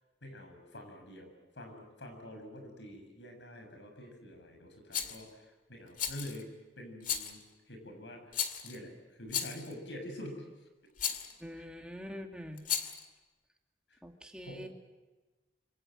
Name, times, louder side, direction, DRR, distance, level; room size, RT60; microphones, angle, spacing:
voice 1, 0.2-6.5 6.8-8.3 8.6-10.5 11.5-11.7 13.9-14.0 14.4-14.7, left 1 dB, 90° left, 5 dB, 7.2 m, -47 dB
Rattle, 4.9-5.2 6.0-6.4 7.0-7.4 8.3-8.8 9.3-9.7 11.0-11.3 12.6-13.0, left 8 dB, 45° left, 2.2 m, -35 dB
voice 2, 11.4-12.7 14.0-14.7, equal, 5° right, 2 dB, 2.4 m, -44 dB
26.5 x 25.0 x 7.8 m, 1.2 s
head